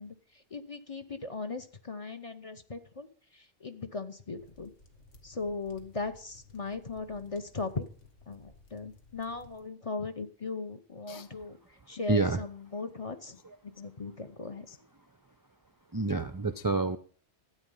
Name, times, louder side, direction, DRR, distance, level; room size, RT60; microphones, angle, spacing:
voice 1, 0.0-3.1 3.3-4.7 5.2-7.9 8.3-13.4 13.6-14.7, left 3 dB, 30° left, 8 dB, 0.9 m, -38 dB
sound 1, 4.4-9.6, left 3 dB, 70° left, 1.8 m, -58 dB
voice 2, 12.1-12.4 14.7-14.8 15.9-17.0, right 3 dB, 30° right, 11 dB, 0.4 m, -28 dB
13.0 x 8.8 x 5.5 m, 0.43 s
omnidirectional pair, 1.3 m